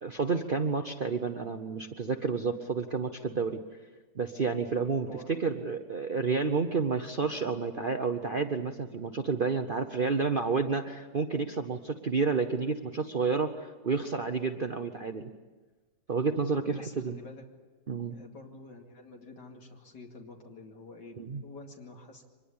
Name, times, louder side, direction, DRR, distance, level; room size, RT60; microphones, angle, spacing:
voice 1, 0.0-3.6 4.1-5.1 5.4-15.3 16.1-17.1 17.9-18.2 21.2-21.4, right 5 dB, 40° right, 6 dB, 0.9 m, -30 dB
voice 2, 5.0-5.5 16.6-17.4 18.1-22.2, left 2 dB, 90° left, 0 dB, 3.0 m, -48 dB
25.0 x 21.0 x 8.6 m, 1.3 s
omnidirectional pair, 1.8 m